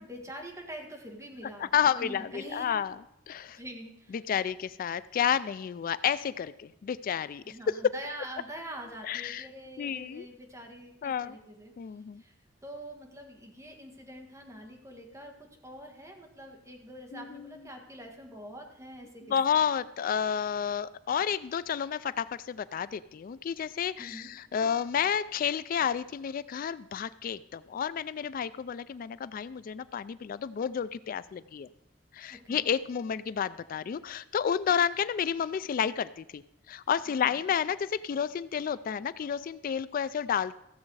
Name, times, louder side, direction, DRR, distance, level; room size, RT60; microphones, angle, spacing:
voice 1, 0.0-2.7 3.6-4.2 7.4-11.7 12.2-12.4 12.6-19.6 24.0-24.3 32.3-32.7 37.2-37.4, right 1 dB, 15° right, 2 dB, 1.7 m, -45 dB
voice 2, 1.6-2.9 3.3-3.6 4.1-7.9 9.1-9.5 9.8-10.3 11.0-11.4 11.8-12.2 17.1-17.5 19.3-31.7 32.1-36.4 36.7-40.6, left 8 dB, 45° left, 16 dB, 0.3 m, -30 dB
15.0 x 7.3 x 4.7 m, 0.83 s
head